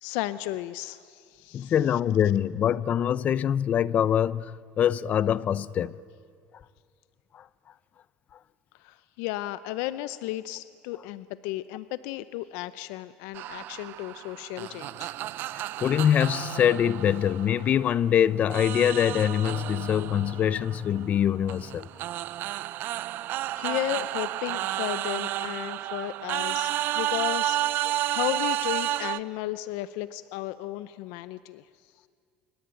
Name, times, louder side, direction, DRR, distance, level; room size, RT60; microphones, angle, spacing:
voice 1, 0.0-1.7 8.8-15.1 23.5-31.7, left 15 dB, 85° left, 0.7 m, -34 dB
voice 2, 1.5-6.0 7.3-7.4 15.5-21.9, left 9 dB, 35° left, 0.6 m, -24 dB
sound 1, 13.3-18.1 18.5-29.2, right 14 dB, 55° right, 0.6 m, -31 dB
26.5 x 24.0 x 9.1 m
cardioid pair, 145°, 4 cm